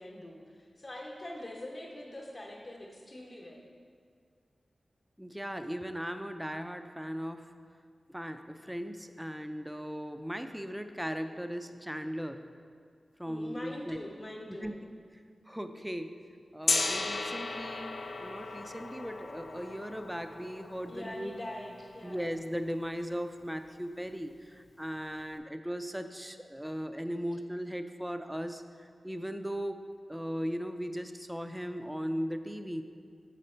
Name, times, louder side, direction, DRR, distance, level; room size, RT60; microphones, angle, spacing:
voice 1, 0.0-3.7 13.2-14.7 20.9-22.3, left 1 dB, 45° left, -3 dB, 0.9 m, -43 dB
voice 2, 5.2-7.4 8.1-12.5 13.2-14.0 14.5-14.9 15.5-16.1 16.5-21.4 22.0-32.8, equal, 5° right, 8 dB, 0.3 m, -38 dB
Gong, 16.7-22.6, left 3 dB, 70° left, 0.5 m, -36 dB
6.3 x 5.1 x 4.3 m, 2.2 s
wide cardioid pair, 85°, 0 cm